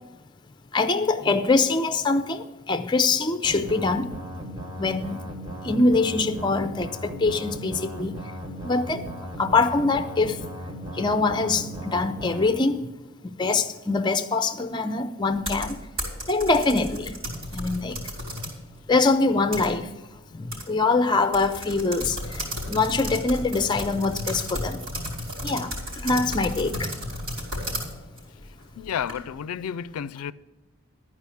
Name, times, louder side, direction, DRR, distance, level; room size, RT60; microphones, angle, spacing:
voice 1, 0.7-4.1 4.8-5.2 5.6-8.1 8.6-9.0 9.4-10.4 11.0-12.8 13.4-15.8 16.3-17.1 17.5-18.0 18.9-19.9 20.3-24.8 25.4-25.7 26.0-26.7, left 3 dB, 20° left, 0.5 m, -23 dB
sound 1, 3.4-12.5, equal, 20° right, 1.2 m, -37 dB
sound 2, 15.3-18.6 19.0-20.1 20.5-20.6 20.9-21.0 21.3-29.4, equal, 75° right, 3.8 m, -33 dB
voice 2, 28.8-30.3, left 8 dB, 90° left, 0.3 m, -31 dB
12.0 x 4.9 x 8.3 m
head